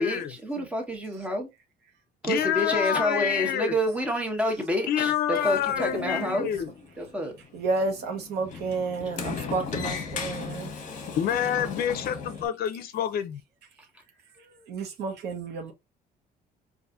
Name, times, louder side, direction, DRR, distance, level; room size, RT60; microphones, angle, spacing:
voice 1, 0.0-1.5 2.2-6.5 7.0-7.3, equal, 10° right, 1.1 m, -28 dB
voice 2, 2.2-3.8 4.9-6.7 11.2-13.4, left 9 dB, 65° left, 0.5 m, -27 dB
Sliding door, 5.4-12.5, left 5 dB, 50° left, 0.9 m, -37 dB
voice 3, 5.7-6.5 7.5-10.7 14.4-15.7, right 3 dB, 75° right, 1.0 m, -31 dB
4.0 x 2.5 x 2.4 m
cardioid pair, 110°, 17 cm